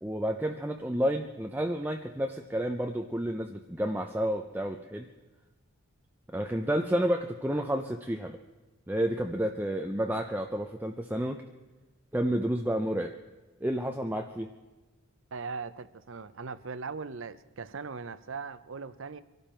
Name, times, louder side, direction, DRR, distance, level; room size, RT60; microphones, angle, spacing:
voice 1, 0.0-5.1 6.3-8.4 8.9-11.4 12.1-13.2 13.6-14.5, equal, 10° right, 3 dB, 0.5 m, -30 dB
voice 2, 15.3-19.2, right 4 dB, 60° right, 14 dB, 0.7 m, -39 dB
24.5 x 12.0 x 4.4 m, 1.2 s
head